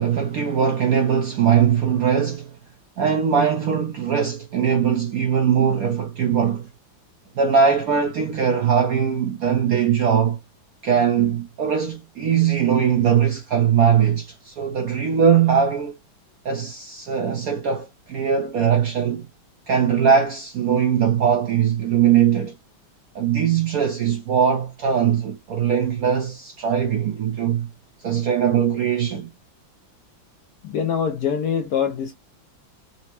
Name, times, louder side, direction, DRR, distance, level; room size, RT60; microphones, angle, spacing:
voice 1, 0.0-2.6 3.0-6.7 7.4-10.4 10.8-16.0 16.4-19.2 19.7-22.5 23.1-27.7 28.0-29.3, right 7 dB, 75° right, 0.8 m, -20 dB
voice 2, 30.6-32.1, left 7 dB, 75° left, 0.9 m, -24 dB
4.2 x 2.0 x 2.8 m
omnidirectional pair, 2.1 m